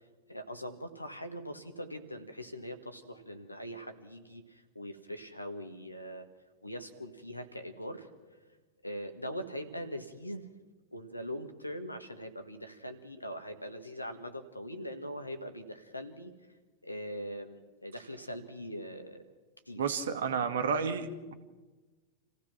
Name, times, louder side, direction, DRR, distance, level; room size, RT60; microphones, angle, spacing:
voice 1, 0.3-6.3 6.6-8.1 8.8-10.5 10.9-16.3 16.8-19.2 19.7-19.8, equal, 85° left, 8 dB, 1.8 m, -42 dB
voice 2, 19.8-21.3, right 6 dB, 65° right, 8 dB, 1.8 m, -31 dB
28.5 x 16.0 x 6.0 m, 1.2 s
figure-of-eight pair, 90°, 0 cm